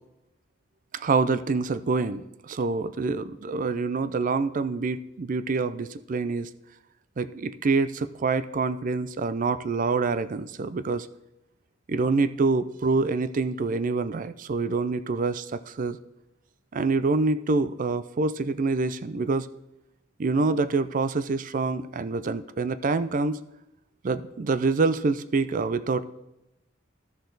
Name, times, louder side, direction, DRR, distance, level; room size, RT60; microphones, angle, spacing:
voice 1, 0.9-6.5 7.2-11.1 11.9-16.0 16.7-19.5 20.2-23.4 24.0-26.0, right 4 dB, 40° right, 14 dB, 0.4 m, -26 dB
12.5 x 6.6 x 3.9 m, 0.91 s
head